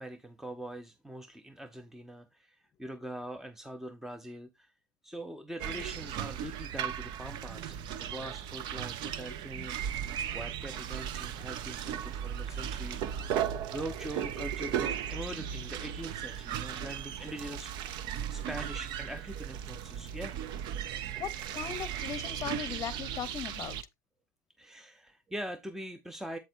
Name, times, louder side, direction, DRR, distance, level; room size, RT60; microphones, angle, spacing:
voice 1, 0.0-4.7 5.0-13.4 13.7-17.9 18.3-20.4 24.6-26.4, right 1 dB, 5° right, 0.7 m, -43 dB
sound 1, 5.6-23.8, right 9 dB, 50° right, 0.7 m, -36 dB
voice 2, 21.2-23.8, left 9 dB, 35° left, 0.8 m, -38 dB
8.1 x 7.4 x 2.6 m
hypercardioid pair, 95°, 10 cm